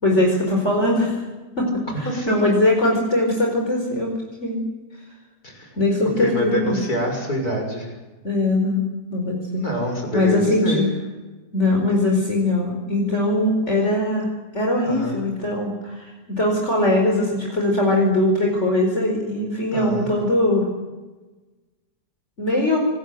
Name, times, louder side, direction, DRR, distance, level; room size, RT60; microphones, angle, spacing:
voice 1, 0.0-1.2 1.6-1.7 2.0-4.1 4.4-4.6 5.8-6.8 8.2-9.6 10.1-10.9 11.5-14.3 14.5-20.7 22.4-22.8, left 1 dB, 40° left, 0 dB, 5.1 m, -21 dB
voice 2, 2.0-2.4 5.4-5.7 6.2-7.9 9.5-10.9 14.8-15.2 19.7-20.2, left 1 dB, 65° left, 2 dB, 6.9 m, -26 dB
26.5 x 20.5 x 7.9 m, 1.2 s
omnidirectional pair, 1.8 m